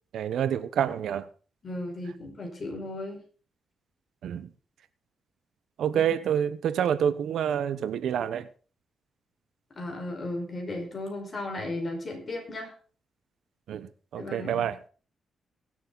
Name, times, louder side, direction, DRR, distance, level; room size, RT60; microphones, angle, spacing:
voice 1, 0.1-1.2 4.2-4.5 5.8-8.5 13.7-14.8, right 9 dB, 85° right, 0.9 m, -27 dB
voice 2, 1.6-3.2 5.9-6.2 9.7-12.7 14.1-14.7, left 2 dB, 35° left, 4.9 m, -35 dB
22.0 x 7.6 x 4.0 m
cardioid pair, 125°, 0 cm